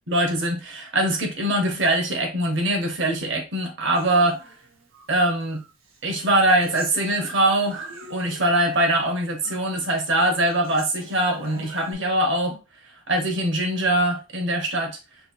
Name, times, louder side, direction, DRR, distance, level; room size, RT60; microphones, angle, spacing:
voice 1, 0.1-4.4 5.1-5.6 6.0-12.6 13.1-15.0, right 1 dB, 60° right, 1.0 m, -22 dB
Human voice, 3.9-5.1 5.5-8.7 9.0-9.7 9.9-11.9, right 3 dB, 90° right, 0.9 m, -42 dB
5.1 x 2.4 x 3.1 m
head